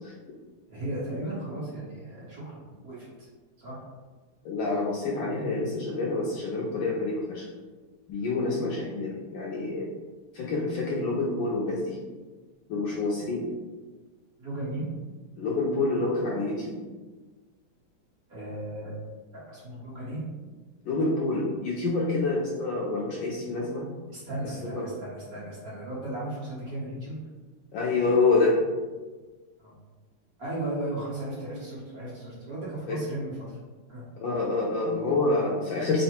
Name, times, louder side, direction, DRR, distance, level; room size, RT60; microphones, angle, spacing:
voice 1, 0.7-3.3 3.6-3.8 8.2-8.3 14.4-14.9 18.3-18.9 19.3-20.2 24.1-27.2 29.6-29.7 30.4-33.4 33.9-34.0, right 1 dB, 50° right, -8 dB, 1.4 m, -36 dB
voice 2, 4.4-7.5 8.1-9.9 10.3-12.0 12.7-13.5 15.4-16.8 20.8-23.9 24.6-24.9 27.7-28.6 32.9-33.0 34.2-36.0, left 3 dB, 75° left, -4 dB, 1.1 m, -27 dB
3.7 x 2.1 x 4.2 m, 1.3 s
omnidirectional pair, 2.4 m